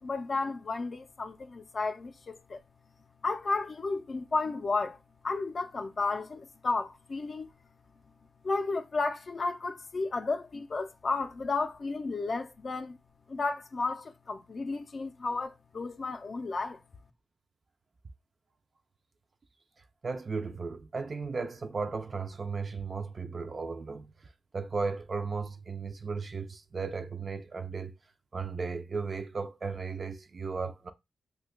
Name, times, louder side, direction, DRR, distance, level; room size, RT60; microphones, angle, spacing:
voice 1, 0.0-2.6 3.2-5.0 5.2-7.5 8.4-13.0 13.3-16.8, left 3 dB, 45° left, 0.4 m, -33 dB
voice 2, 20.0-24.1 24.5-28.0 28.3-30.9, right 4 dB, 40° right, 0.3 m, -35 dB
2.7 x 2.2 x 3.7 m
wide cardioid pair, 125°, 0 cm